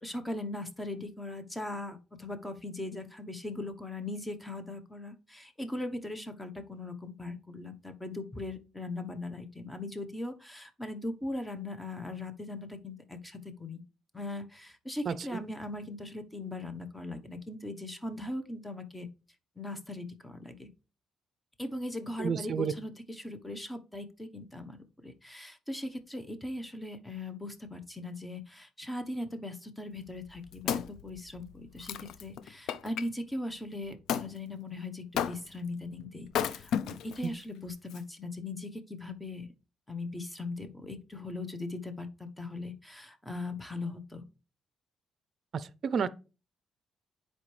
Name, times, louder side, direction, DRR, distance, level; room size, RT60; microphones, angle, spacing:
voice 1, 0.0-13.8 14.1-19.1 19.6-20.7 21.6-24.8 25.0-39.5 39.9-44.2, left 2 dB, 10° left, 1.0 m, -39 dB
voice 2, 15.1-15.4 22.2-22.7 37.2-37.3 45.5-46.1, right 6 dB, 55° right, 0.5 m, -31 dB
Wood, 30.1-33.1 34.1-34.3 35.2-35.7 36.3-37.3 37.9-38.0, left 8 dB, 80° left, 0.4 m, -34 dB
9.9 x 4.4 x 3.3 m
cardioid pair, 90°, 0 cm